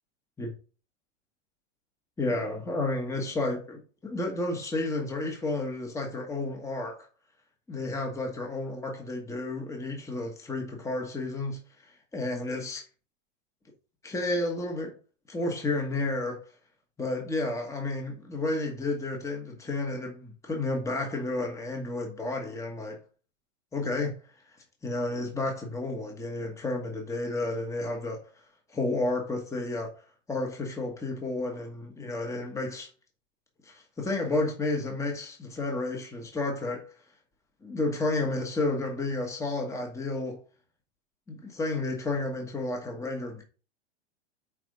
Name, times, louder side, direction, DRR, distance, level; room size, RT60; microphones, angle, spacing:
voice 1, 2.2-7.1 7.7-11.6 12.1-12.8 14.0-14.9 15.3-16.4 17.0-23.0 23.7-24.1 24.8-28.2 28.7-29.9 30.3-32.9 33.6-36.8 37.6-40.4 41.3-43.4, left 2 dB, 10° left, 1.3 m, -31 dB
6.0 x 4.2 x 5.3 m
hypercardioid pair, 125°, 35 cm